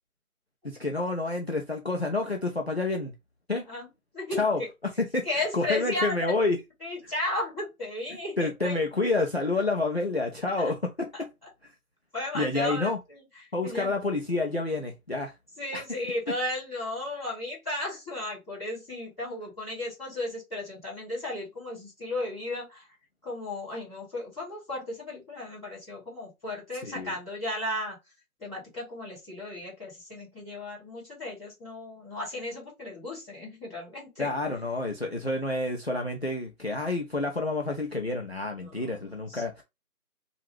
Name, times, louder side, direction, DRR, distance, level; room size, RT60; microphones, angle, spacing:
voice 1, 0.6-3.1 3.5-3.6 4.4-6.6 8.4-11.1 11.6-11.7 12.3-13.0 13.5-15.3 15.7-15.8 26.8-27.1 34.2-39.6, left 2 dB, 45° left, 0.5 m, -29 dB
voice 2, 4.1-4.7 5.2-6.3 6.8-8.8 11.1-11.2 12.1-13.2 13.6-13.9 15.6-22.8 23.2-28.0 28.4-34.3 38.6-38.9 39.3-39.4, left 1 dB, ahead, 1.5 m, -35 dB
2.8 x 2.4 x 3.2 m
figure-of-eight pair, 165°, 44 cm